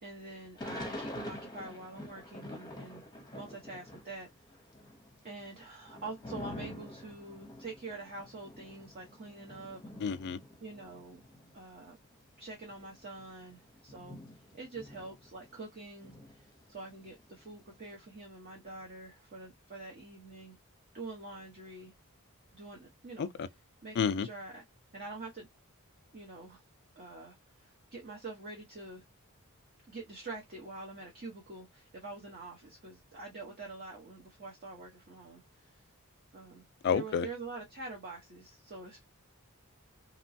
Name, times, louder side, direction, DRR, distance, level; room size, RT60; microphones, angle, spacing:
voice 1, 0.0-4.3 5.2-9.8 10.6-11.2 11.5-12.0 12.4-14.2 14.5-16.4 16.7-20.6 20.9-21.9 22.5-23.3 23.8-24.6 24.9-25.5 26.1-26.6 27.0-29.0 29.9-35.8 36.3-36.7 36.9-39.0, right 3 dB, 45° right, 0.9 m, -46 dB
Thunder / Rain, 0.6-4.2 4.5-11.6 12.2-12.3 12.5-15.7 16.0-17.7, left 1 dB, 20° left, 0.7 m, -46 dB
voice 2, 10.0-10.4 23.2-23.3 24.0-24.3 36.8-37.3, left 6 dB, 50° left, 0.3 m, -29 dB
2.9 x 2.2 x 2.6 m
head